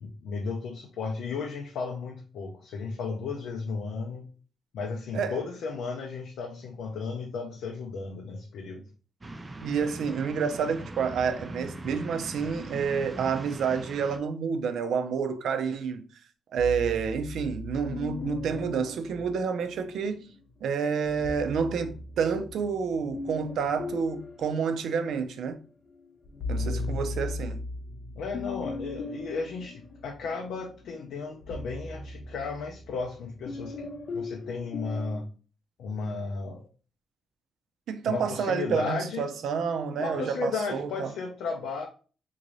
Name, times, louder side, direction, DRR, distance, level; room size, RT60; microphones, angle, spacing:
voice 1, 0.0-4.3 4.7-8.9 26.6-27.1 28.1-33.9 34.1-35.3 35.8-36.6 38.1-39.3 40.0-41.9, left 4 dB, 90° left, 0.5 m, -34 dB
sound 1, 9.2-14.2, right 1 dB, 20° right, 0.4 m, -41 dB
voice 2, 9.6-16.0 16.5-20.3 20.6-25.6 26.5-27.6 37.9-41.1, right 6 dB, 75° right, 0.4 m, -29 dB
sound 2, 16.6-20.1 21.0-25.5 25.9-35.2, left 2 dB, 45° left, 0.7 m, -38 dB
3.6 x 2.6 x 3.0 m
cardioid pair, 125°, 0 cm